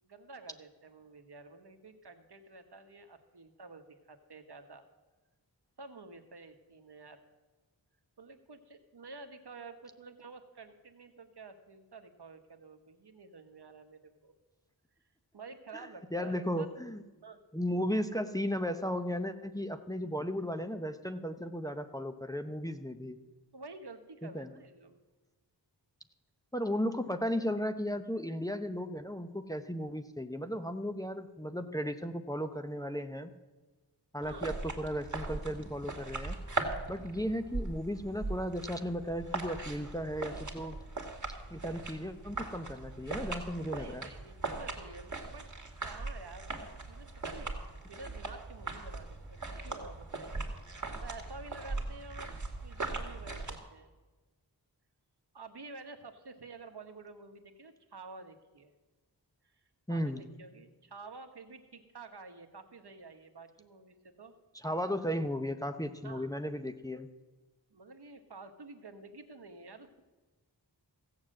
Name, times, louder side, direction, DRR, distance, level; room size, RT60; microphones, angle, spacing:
voice 1, 0.0-4.8 5.8-7.2 8.2-14.3 15.3-16.7 17.2-17.4 23.5-25.0 34.2-34.5 43.6-45.5 45.8-47.5 47.9-50.4 51.0-53.9 55.3-58.7 59.9-64.3 66.0-66.3 67.7-70.0, right 3 dB, 65° right, 7 dB, 1.3 m, -50 dB
voice 2, 15.7-17.0 17.5-23.2 24.2-24.5 26.5-33.3 34.1-36.4 36.9-40.8 41.5-44.1 59.9-60.2 64.5-67.1, equal, 10° left, 7 dB, 0.8 m, -35 dB
sound 1, 34.2-53.6, right 3 dB, 45° right, 2.1 m, -40 dB
15.5 x 7.3 x 7.6 m, 1.2 s
wide cardioid pair, 50°, 42 cm